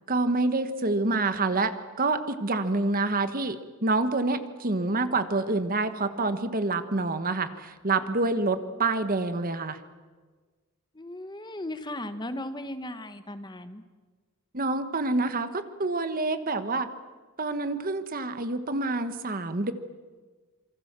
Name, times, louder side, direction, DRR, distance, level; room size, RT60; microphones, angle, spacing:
voice 1, 0.1-3.6 3.8-9.8 14.5-16.9 17.4-19.7, right 3 dB, 40° right, 10 dB, 1.4 m, -27 dB
voice 2, 10.9-13.8, left 1 dB, 20° left, 10 dB, 1.2 m, -37 dB
27.0 x 24.5 x 7.5 m, 1.4 s
head